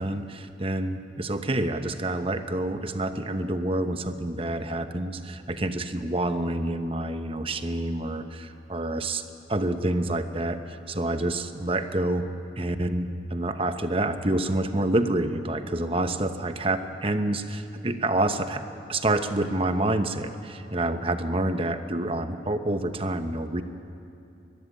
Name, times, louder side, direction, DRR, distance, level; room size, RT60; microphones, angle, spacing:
voice 1, 0.0-9.2 9.5-12.3 12.6-23.6, right 1 dB, 30° right, 9 dB, 1.0 m, -28 dB
22.5 x 15.5 x 9.8 m, 2.7 s
head